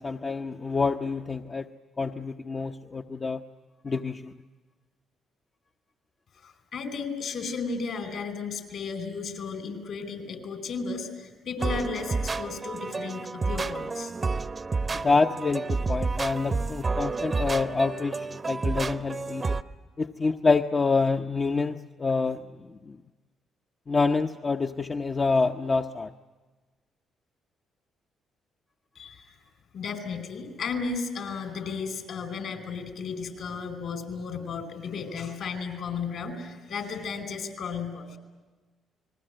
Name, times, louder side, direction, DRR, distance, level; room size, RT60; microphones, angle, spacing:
voice 1, 0.0-1.7 2.0-3.4 3.8-4.3 14.9-19.6 20.0-23.0 23.9-26.1, left 4 dB, 35° left, 4 dB, 0.8 m, -27 dB
voice 2, 6.4-14.4 28.9-29.4 29.7-38.2, left 5 dB, 65° left, 8 dB, 4.7 m, -34 dB
sound 1, 11.6-19.6, right 4 dB, 35° right, 0.9 m, -30 dB
29.5 x 20.5 x 7.8 m, 1.3 s
supercardioid pair, 60°, 0 cm